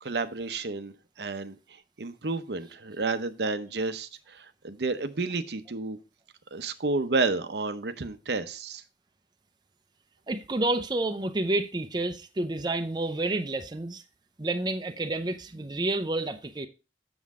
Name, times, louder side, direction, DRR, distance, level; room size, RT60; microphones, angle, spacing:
voice 1, 0.0-1.6 2.0-6.0 6.5-8.8, right 3 dB, 70° right, 0.7 m, -31 dB
voice 2, 10.3-14.0 14.4-16.7, right 2 dB, 25° right, 0.6 m, -29 dB
7.5 x 7.0 x 3.6 m
head